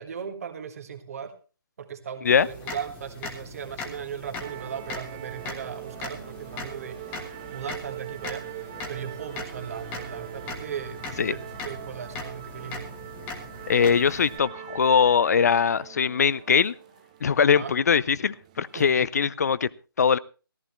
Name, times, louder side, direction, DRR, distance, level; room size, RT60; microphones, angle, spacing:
voice 1, 0.0-1.4 1.8-12.9 17.5-17.7 18.7-19.1, right 7 dB, 40° right, 1.6 m, -38 dB
sound 1, 2.3-14.4, left 3 dB, 10° left, 1.5 m, -40 dB
sound 2, 4.4-19.0, right 14 dB, 20° right, 0.5 m, -42 dB
voice 2, 13.7-16.7 17.2-19.7 20.0-20.2, left 6 dB, 45° left, 0.5 m, -21 dB
15.0 x 14.5 x 3.2 m
figure-of-eight pair, 160°, 12 cm